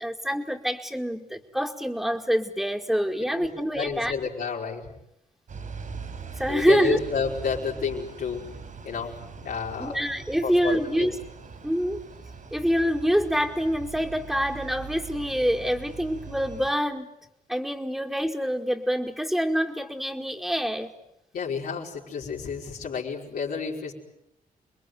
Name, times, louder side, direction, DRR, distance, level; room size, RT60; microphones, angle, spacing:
voice 1, 0.0-4.1 6.4-7.0 9.8-11.2 11.6-12.0 12.5-17.1 17.5-20.9, equal, 5° right, 0 dB, 2.2 m, -26 dB
voice 2, 3.7-4.9 6.5-8.4 8.8-10.0 10.4-11.1 21.3-23.9, left 6 dB, 90° left, -5 dB, 5.1 m, -30 dB
sound 1, 5.5-16.7, right 5 dB, 60° right, 4.8 m, -41 dB
29.0 x 21.5 x 9.5 m, 0.79 s
cardioid pair, 90°, 15 cm